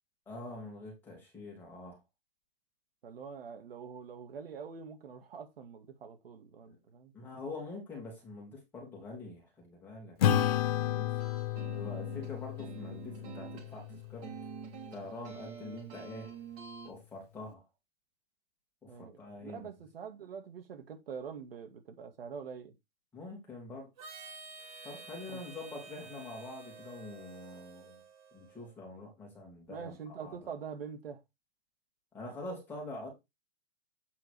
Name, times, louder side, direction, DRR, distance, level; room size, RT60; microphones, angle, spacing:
voice 1, 0.3-2.0 6.6-6.8 7.1-11.2 11.7-14.4 14.9-16.3 16.8-17.6 18.8-19.7 23.1-23.9 24.8-28.0 28.3-30.5 32.1-33.1, left 2 dB, 5° left, 2.3 m, -45 dB
voice 2, 3.0-7.1 12.0-12.3 18.9-22.7 25.3-25.7 29.7-31.2, right 6 dB, 75° right, 2.2 m, -45 dB
Acoustic guitar / Strum, 10.2-15.0, left 10 dB, 40° left, 0.8 m, -33 dB
sound 1, 11.1-16.9, right 8 dB, 35° right, 2.3 m, -47 dB
Harmonica, 24.0-28.7, right 4 dB, 55° right, 3.0 m, -50 dB
8.4 x 3.8 x 4.8 m
hypercardioid pair, 170°, 29 cm